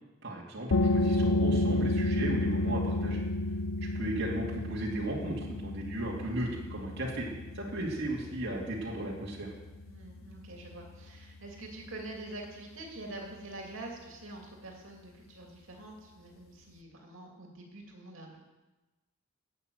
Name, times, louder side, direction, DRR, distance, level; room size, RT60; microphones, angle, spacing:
voice 1, 0.2-3.2 3.9-7.3 7.5-9.5, right 1 dB, 55° right, -5 dB, 2.4 m, -35 dB
sound 1, 0.7-12.1, left 1 dB, 90° left, 0.8 m, -32 dB
voice 2, 9.9-18.4, right 2 dB, 70° right, 0 dB, 2.7 m, -45 dB
12.5 x 8.5 x 7.9 m, 1.1 s
head